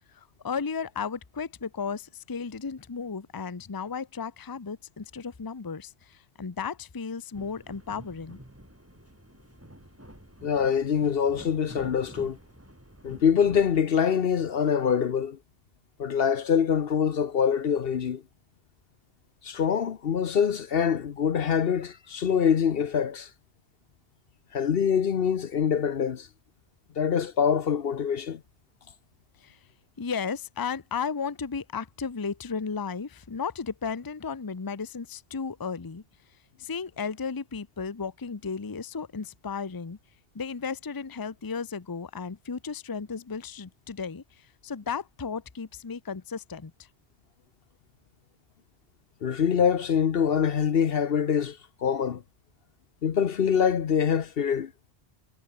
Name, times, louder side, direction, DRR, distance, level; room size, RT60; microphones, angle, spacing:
voice 1, 0.1-8.4 29.4-29.6 30.0-36.0 36.6-40.0 40.3-46.7, left 5 dB, 20° left, 0.7 m, -34 dB
sound 1, 7.3-13.8, right 1 dB, 10° right, 3.8 m, -49 dB
voice 2, 10.4-12.4 13.0-15.4 16.0-18.2 19.4-23.3 24.5-26.3 27.0-28.4 49.2-52.2 53.0-54.7, left 7 dB, 60° left, 1.0 m, -24 dB
omnidirectional pair, 1.1 m